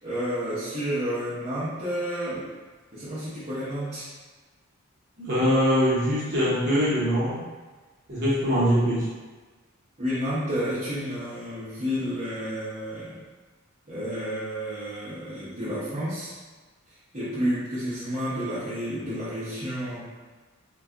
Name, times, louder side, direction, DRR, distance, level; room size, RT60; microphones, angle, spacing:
voice 1, 0.0-2.5 2.9-4.1 10.0-13.2 13.9-16.3 17.1-20.1, equal, 35° right, -13 dB, 0.8 m, -30 dB
voice 2, 5.2-7.4 8.1-9.1, equal, 50° right, -9 dB, 1.1 m, -23 dB
2.4 x 2.2 x 3.7 m, 1.3 s
head